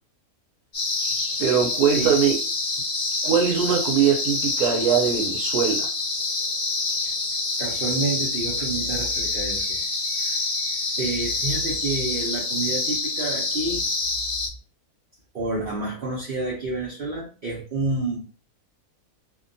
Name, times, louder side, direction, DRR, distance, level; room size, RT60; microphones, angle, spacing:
sound 1, 0.7-14.5, left 3 dB, 40° left, 0.6 m, -27 dB
voice 1, 1.4-2.4 3.2-5.9, right 7 dB, 90° right, 3 dB, 1.1 m, -21 dB
voice 2, 7.6-9.8 10.2-10.4 11.0-13.8 15.3-18.3, right 3 dB, 55° right, -3 dB, 0.6 m, -29 dB
2.7 x 2.2 x 2.5 m, 0.36 s
omnidirectional pair, 1.6 m